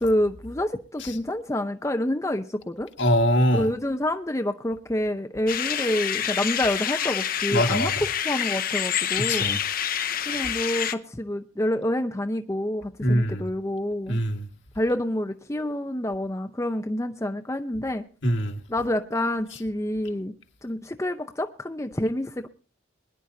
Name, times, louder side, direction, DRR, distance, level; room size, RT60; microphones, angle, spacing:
voice 1, 0.0-2.9 3.5-9.6 10.3-14.2 14.8-18.1 18.7-20.3 20.6-22.5, left 1 dB, 15° left, 0.6 m, -28 dB
voice 2, 3.0-3.7 7.5-7.9 9.3-9.6 13.0-13.4 14.1-14.5 18.2-18.6, equal, 65° left, 1.8 m, -23 dB
sound 1, 5.5-10.9, left 9 dB, 45° left, 0.8 m, -27 dB
22.5 x 10.5 x 2.7 m
head